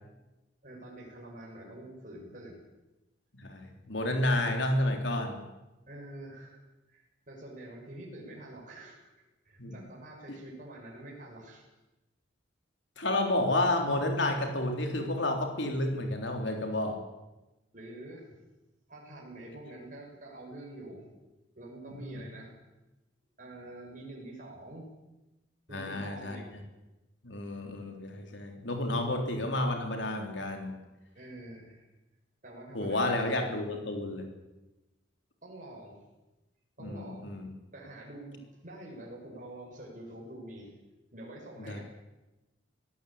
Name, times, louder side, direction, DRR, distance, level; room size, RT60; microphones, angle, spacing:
voice 1, 0.6-2.6 5.9-6.6 6.9-9.1 9.4-11.7 17.7-18.4 18.9-21.1 21.6-22.5 23.4-24.9 25.7-26.5 31.1-31.9 32.4-33.3 35.4-36.0 36.8-37.3 37.7-40.7 41.1-41.8, right 1 dB, 45° right, -2 dB, 5.9 m, -46 dB
voice 2, 3.3-5.4 9.6-9.8 13.0-17.0 22.0-22.2 25.7-26.4 27.2-30.7 32.7-34.3 36.8-37.5 41.7-41.8, left 1 dB, 70° left, 3 dB, 3.6 m, -30 dB
24.0 x 17.0 x 8.7 m, 1.0 s
head